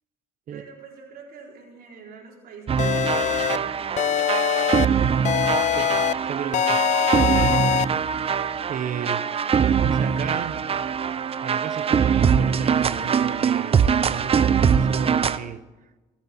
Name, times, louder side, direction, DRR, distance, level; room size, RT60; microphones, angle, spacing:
voice 1, 0.5-5.8, right 5 dB, 70° right, 4.2 m, -47 dB
sound 1, 2.7-15.4, right 7 dB, 35° right, 0.7 m, -22 dB
sound 2, 2.8-3.6 4.0-4.9 5.3-6.1 6.5-7.9, left 10 dB, 45° left, 0.4 m, -23 dB
voice 2, 6.2-6.8 7.1-7.9 8.7-9.3 9.6-10.6 11.4-14.5 14.8-15.6, right 8 dB, 55° right, 1.0 m, -34 dB
25.0 x 8.7 x 4.4 m
supercardioid pair, 85°, 16 cm